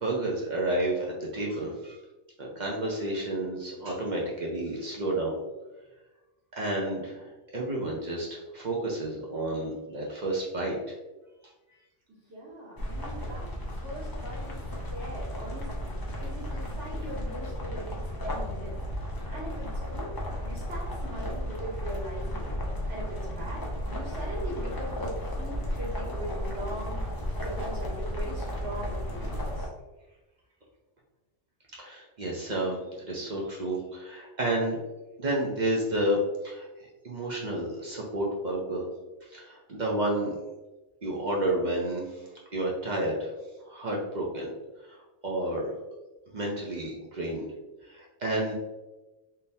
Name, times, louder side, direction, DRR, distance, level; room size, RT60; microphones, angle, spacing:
voice 1, 0.0-2.0 2.4-5.4 6.6-10.9 31.7-32.8 33.0-34.8 35.2-36.7 37.0-38.8 39.3-40.3 41.0-42.2 42.5-43.3 43.7-44.5 44.9-45.0 45.2-45.7 46.3-47.5 47.9-48.5, right 1 dB, 50° right, -2 dB, 0.7 m, -30 dB
voice 2, 12.3-13.5 13.8-14.6 14.9-18.7 19.3-20.1 20.4-22.5 22.9-23.6 23.9-27.0 27.4-29.7, right 1 dB, 80° right, -15 dB, 1.9 m, -40 dB
sound 1, 12.8-29.7, equal, 30° left, 0.4 m, -34 dB
3.8 x 2.7 x 2.6 m, 1.1 s
omnidirectional pair, 1.2 m